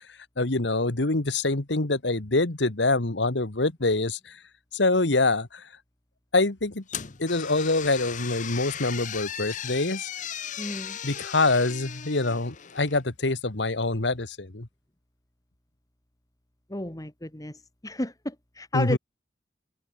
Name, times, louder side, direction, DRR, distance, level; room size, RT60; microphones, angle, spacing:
voice 1, 0.1-4.4 4.7-5.7 6.3-6.8 7.2-10.1 11.0-14.7 18.7-19.0, left 2 dB, 85° left, 1.7 m, -25 dB
sound 1, 6.9-13.0, left 9 dB, 45° left, 1.0 m, -37 dB
voice 2, 10.6-11.0 16.7-19.0, left 1 dB, 20° left, 2.0 m, -33 dB
head